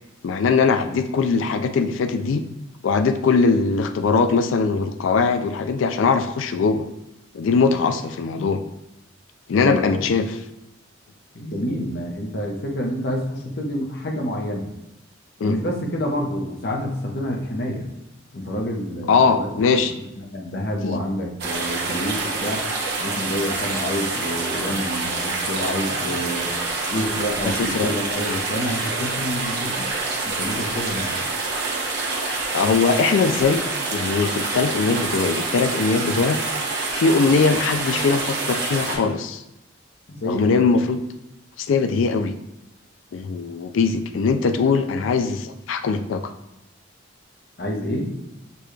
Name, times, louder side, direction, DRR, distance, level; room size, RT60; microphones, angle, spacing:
voice 1, 0.2-2.4 2.8-6.9 7.3-8.6 9.5-10.4 15.4-15.6 19.1-19.9 20.8-21.0 27.4-27.9 28.3-28.4 32.3-33.6 33.9-36.4 36.7-39.4 40.3-41.0 41.6-42.4 43.1-46.3, left 4 dB, 80° left, 9 dB, 0.4 m, -21 dB
voice 2, 9.5-10.0 11.3-14.7 15.4-17.8 18.3-19.8 20.2-22.6 23.0-26.5 26.9-29.9 30.2-31.2 40.1-40.6 47.6-48.1, equal, 55° left, 0 dB, 0.8 m, -28 dB
sound 1, 21.4-39.0, right 3 dB, 55° right, 1.0 m, -26 dB
6.8 x 2.3 x 3.2 m, 0.90 s
head